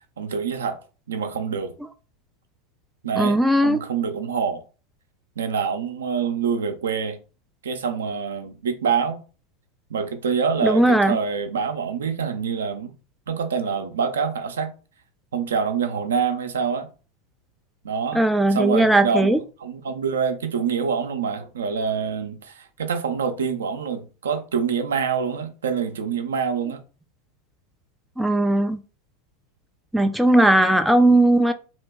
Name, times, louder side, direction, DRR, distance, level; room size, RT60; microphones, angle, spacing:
voice 1, 0.2-0.8 1.1-1.7 3.0-4.6 5.4-7.2 7.6-9.2 9.9-12.9 13.3-14.7 15.3-16.9 17.8-18.2 18.5-26.8, right 6 dB, 65° right, 0.5 m, -26 dB
voice 2, 3.2-3.8 10.6-11.2 18.1-19.4 28.2-28.8 29.9-31.5, right 1 dB, 5° right, 0.3 m, -18 dB
2.8 x 2.6 x 3.4 m
figure-of-eight pair, 85°, 0 cm